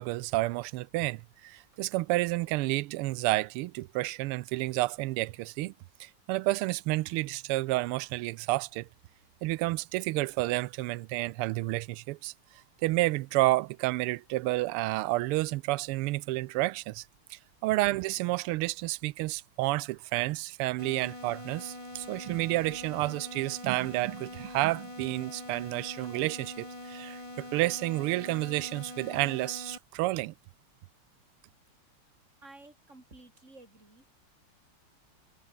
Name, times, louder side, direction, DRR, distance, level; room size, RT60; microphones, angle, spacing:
voice 1, 0.0-5.7 6.0-8.9 9.4-12.3 12.8-17.0 17.3-30.3, right 19 dB, 85° right, 1.5 m, -30 dB
sound 1, 20.8-29.8, left 1 dB, 15° left, 3.6 m, -44 dB
voice 2, 32.4-34.0, right 2 dB, 30° right, 6.0 m, -53 dB
omnidirectional pair, 2.4 m